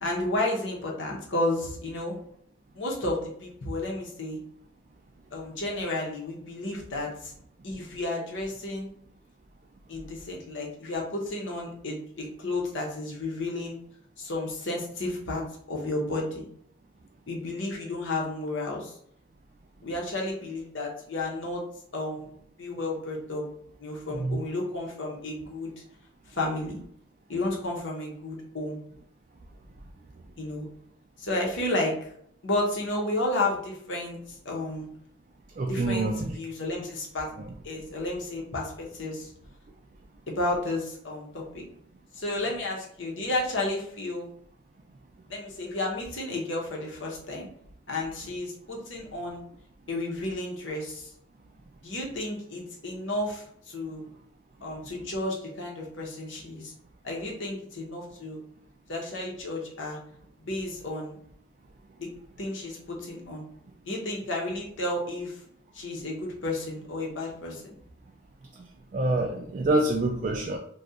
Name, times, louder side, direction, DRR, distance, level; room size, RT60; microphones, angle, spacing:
voice 1, 0.0-2.2 2.7-4.4 5.3-7.3 7.6-8.9 9.9-13.8 14.2-15.4 15.7-16.4 17.3-18.9 19.8-21.6 21.9-22.3 22.6-23.4 23.8-25.7 26.3-26.8 27.3-28.8 30.4-30.7 31.2-32.1 32.4-34.9 35.7-37.3 37.6-39.3 40.3-41.6 42.1-44.3 45.3-47.5 47.9-49.4 49.9-51.1 51.8-54.0 54.6-56.7 57.0-58.4 58.9-60.0 60.4-61.2 62.0-62.1 62.4-63.4 63.8-65.4 65.7-67.7, left 2 dB, 70° left, -1 dB, 0.9 m, -32 dB
voice 2, 35.6-36.3 68.9-70.6, right 2 dB, 40° right, 1 dB, 0.3 m, -26 dB
2.8 x 2.4 x 3.6 m, 0.65 s
head